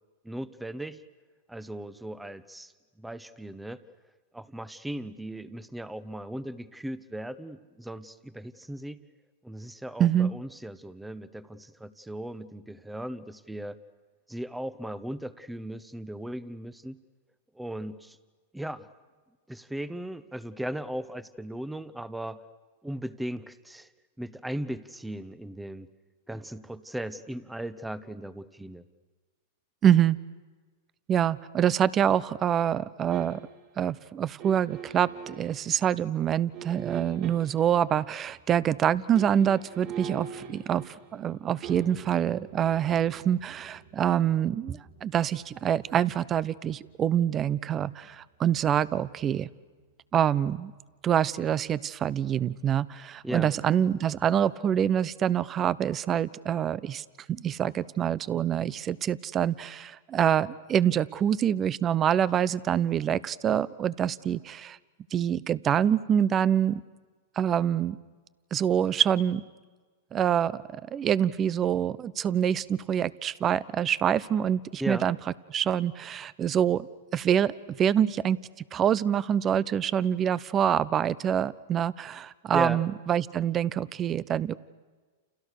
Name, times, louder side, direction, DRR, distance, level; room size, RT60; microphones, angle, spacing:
voice 1, 0.2-1.0 1.5-2.7 3.0-3.8 4.3-9.0 9.4-13.8 14.3-17.0 17.5-18.2 18.5-18.9 19.5-22.4 22.8-23.9 24.2-25.9 26.3-28.8 53.2-53.5 74.8-75.0 82.5-82.8, right 1 dB, 5° right, 15 dB, 1.2 m, -37 dB
voice 2, 10.0-10.3 29.8-30.2 31.1-33.4 33.8-49.5 50.1-50.7 51.0-64.8 65.1-66.8 67.4-68.0 68.5-69.4 70.1-75.2 75.5-76.9 77.1-78.4 78.7-84.5, right 9 dB, 30° right, 20 dB, 0.8 m, -26 dB
sound 1, 33.1-33.7 34.4-35.6 36.5-37.7 39.0-49.9 50.2-50.4, right 7 dB, 50° right, 6.9 m, -45 dB
29.5 x 29.5 x 6.7 m, 1.4 s
hypercardioid pair, 120°, 0 cm